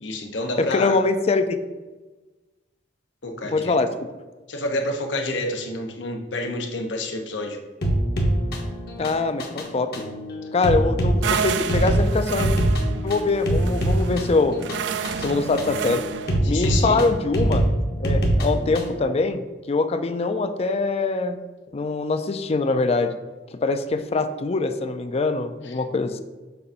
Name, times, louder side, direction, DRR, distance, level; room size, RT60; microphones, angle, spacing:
voice 1, 0.0-1.0 3.2-3.7 4.5-7.6 16.4-17.0 25.6-25.8, left 2 dB, 85° left, 3 dB, 0.9 m, -29 dB
voice 2, 0.6-1.6 3.5-3.9 9.0-10.1 10.5-12.5 13.0-14.6 15.1-16.0 16.5-17.6 18.0-19.4 19.7-21.4 21.7-23.1 23.6-26.2, left 3 dB, 35° left, 9 dB, 0.4 m, -23 dB
sound 1, 7.8-19.0, right 1 dB, 60° left, 1.0 m, -24 dB
sound 2, 11.2-16.4, right 7 dB, 70° right, 0.3 m, -30 dB
6.7 x 2.6 x 5.5 m, 1.2 s
head